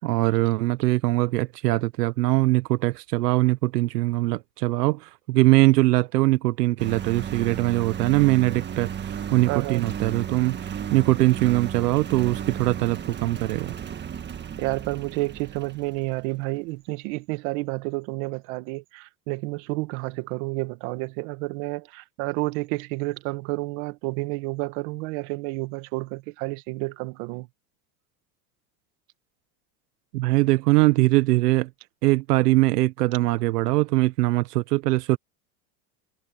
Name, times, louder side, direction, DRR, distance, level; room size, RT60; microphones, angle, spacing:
voice 1, 0.0-13.7 30.1-31.7 32.0-35.2, right 19 dB, 90° right, 1.1 m, -22 dB
Engine, 6.8-16.2, right 8 dB, 20° right, 1.7 m, -34 dB
voice 2, 9.5-9.9 14.6-27.5, right 23 dB, 60° right, 1.8 m, -30 dB
supercardioid pair, 135°, 46 cm